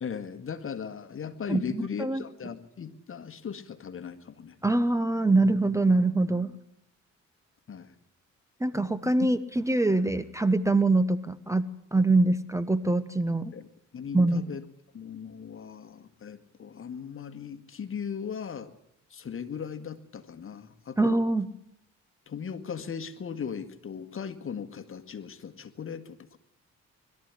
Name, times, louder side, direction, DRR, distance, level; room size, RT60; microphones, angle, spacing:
voice 1, 0.0-4.6 7.7-7.9 9.2-9.4 13.5-13.7 13.9-14.6 14.9-18.7 19.1-21.2 22.3-26.4, left 7 dB, 45° left, 10 dB, 1.9 m, -38 dB
voice 2, 1.5-2.2 4.6-6.6 8.6-13.5 14.1-14.4 21.0-21.5, right 2 dB, 10° right, 15 dB, 1.0 m, -24 dB
21.5 x 13.5 x 9.7 m, 0.77 s
cardioid pair, 90°, 30 cm